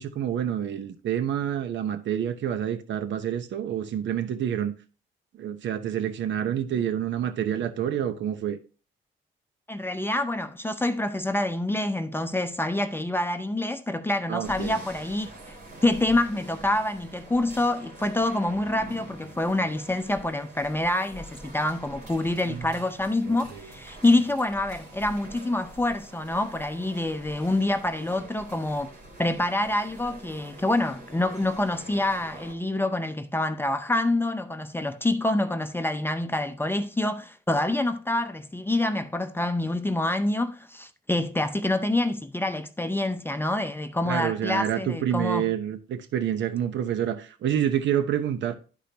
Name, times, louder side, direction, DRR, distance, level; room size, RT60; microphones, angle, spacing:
voice 1, 0.0-4.7 5.4-8.6 14.3-14.8 22.5-22.7 23.3-23.7 44.1-48.5, right 10 dB, 65° right, 0.9 m, -28 dB
voice 2, 9.7-15.3 15.8-28.9 29.2-45.5, left 1 dB, 10° left, 0.6 m, -26 dB
sound 1, 14.4-32.5, right 2 dB, 50° right, 2.8 m, -45 dB
11.5 x 5.0 x 2.9 m
cardioid pair, 90°, 20 cm